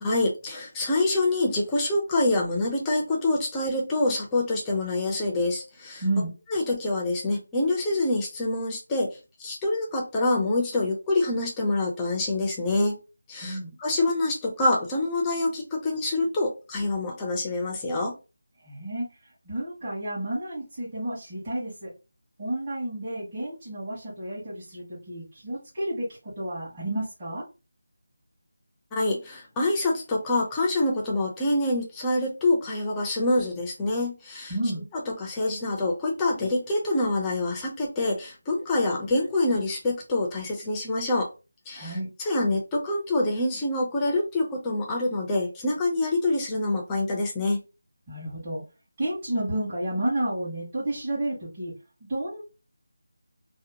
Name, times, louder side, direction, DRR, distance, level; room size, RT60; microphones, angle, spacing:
voice 1, 0.0-6.0 6.5-13.0 13.3-18.2 28.9-34.5 35.1-41.3 41.7-47.6, left 2 dB, 10° left, 0 dB, 0.4 m, -26 dB
voice 2, 6.0-6.3 13.4-13.7 18.6-19.1 19.4-21.9 22.4-27.4 34.5-34.9 41.7-42.1 48.1-48.6 49.0-51.7 52.0-52.4, right 1 dB, 25° right, -11 dB, 1.1 m, -31 dB
2.7 x 2.0 x 2.7 m, 0.30 s
figure-of-eight pair, 175°, 0 cm